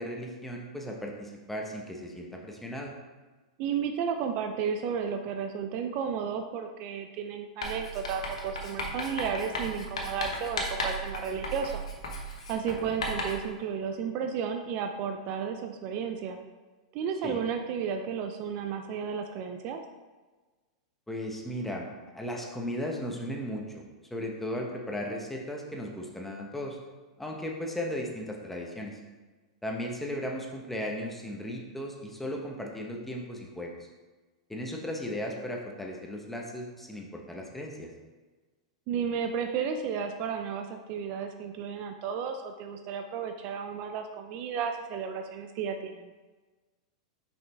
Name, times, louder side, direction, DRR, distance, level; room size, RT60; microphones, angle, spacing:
voice 1, 0.0-3.0 12.7-12.9 17.2-17.4 21.1-21.9 22.1-23.8 24.1-26.8 27.2-29.0 29.6-33.7 34.5-37.9, equal, 5° left, 0 dB, 1.0 m, -36 dB
voice 2, 3.6-11.8 12.5-16.4 16.9-19.8 38.9-46.1, right 7 dB, 45° right, 5 dB, 0.5 m, -33 dB
Writing, 7.6-13.5, left 1 dB, 85° left, 1.1 m, -35 dB
5.6 x 5.4 x 3.4 m, 1.3 s
hypercardioid pair, 110°, 3 cm